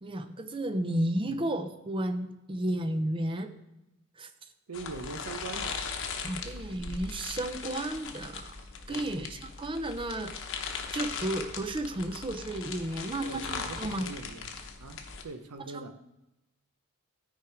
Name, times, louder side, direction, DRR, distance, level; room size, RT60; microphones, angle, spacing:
voice 1, 0.0-3.5 4.2-4.3 6.2-8.5 8.9-10.3 10.9-14.1 15.7-15.9, right 1 dB, 25° right, 0.5 m, -33 dB
sound 1, 4.7-15.2, left 5 dB, 60° left, 1.0 m, -39 dB
voice 2, 4.7-5.9 8.9-9.1 13.2-16.0, right 3 dB, 85° right, 0.7 m, -43 dB
12.5 x 4.8 x 4.7 m
head